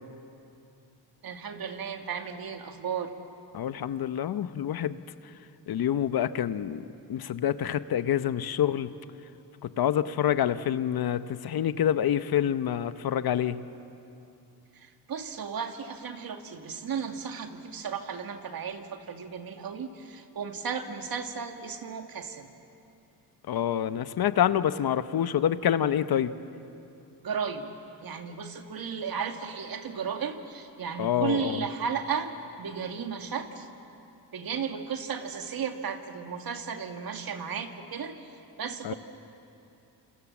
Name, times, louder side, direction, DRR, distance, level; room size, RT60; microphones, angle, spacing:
voice 1, 1.2-3.1 14.7-22.5 27.2-27.7 28.0-33.7 34.3-38.3 38.6-38.9, right 6 dB, 60° right, 5 dB, 2.2 m, -34 dB
voice 2, 3.5-5.0 5.7-6.8 7.1-8.9 9.6-13.6 23.5-26.3 31.0-31.6 38.8-38.9, left 10 dB, 65° left, 13 dB, 0.9 m, -27 dB
28.0 x 27.5 x 7.4 m, 2.8 s
cardioid pair, 85°, 40 cm